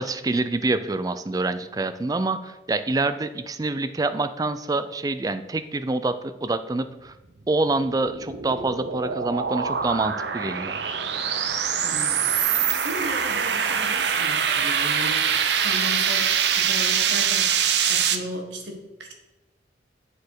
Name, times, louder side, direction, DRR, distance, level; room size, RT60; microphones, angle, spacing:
voice 1, 0.0-7.1 7.5-10.7, right 2 dB, 20° right, 12 dB, 0.3 m, -26 dB
sound 1, 7.9-18.2, right 7 dB, 70° right, 0.6 m, -24 dB
voice 2, 11.8-19.1, equal, 85° right, 3 dB, 1.4 m, -36 dB
9.4 x 4.5 x 4.7 m, 1.0 s
head